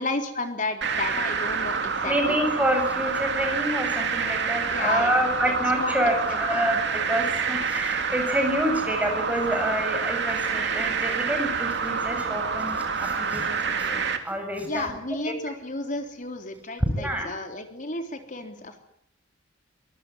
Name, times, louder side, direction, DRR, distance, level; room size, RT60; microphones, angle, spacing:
voice 1, 0.0-2.4 4.7-5.9 6.3-6.6 14.7-18.8, left 2 dB, 40° left, 6 dB, 3.7 m, -32 dB
sound 1, 0.8-14.2, right 5 dB, 60° right, 2.9 m, -27 dB
voice 2, 2.0-14.8 16.9-17.3, right 1 dB, 10° right, 4 dB, 7.5 m, -27 dB
25.0 x 19.0 x 9.9 m, 0.74 s
head